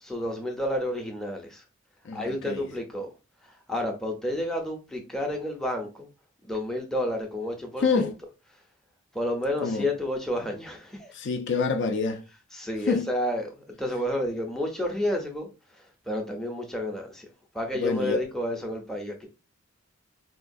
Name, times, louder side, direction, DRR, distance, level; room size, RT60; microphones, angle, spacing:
voice 1, 0.0-1.6 2.1-3.1 3.4-6.1 6.4-8.1 9.1-11.1 12.5-17.3 17.5-19.3, left 1 dB, ahead, 0.5 m, -31 dB
voice 2, 2.0-2.7 7.8-8.1 9.6-9.9 11.1-12.2 12.9-13.1 17.7-18.2, left 4 dB, 55° left, 0.4 m, -26 dB
4.2 x 2.3 x 2.5 m
head